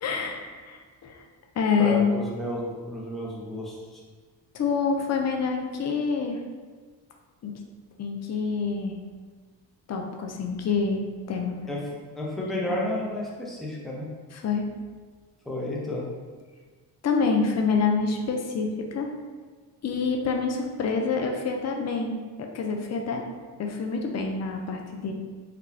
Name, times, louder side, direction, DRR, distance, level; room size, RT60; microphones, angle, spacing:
voice 1, 0.0-1.2 1.6-2.1 4.5-6.4 7.4-7.5 8.0-9.0 9.9-11.0 11.3-11.5 12.7-12.8 14.3-14.7 17.0-19.1 19.8-22.2 22.5-23.2 23.6-25.1, left 5 dB, 35° left, 2 dB, 0.6 m, -27 dB
voice 2, 1.8-4.0 11.7-11.8 12.1-14.1 15.5-16.0, left 1 dB, ahead, -4 dB, 0.8 m, -31 dB
3.6 x 2.3 x 3.3 m, 1.4 s
supercardioid pair, 50°, 49 cm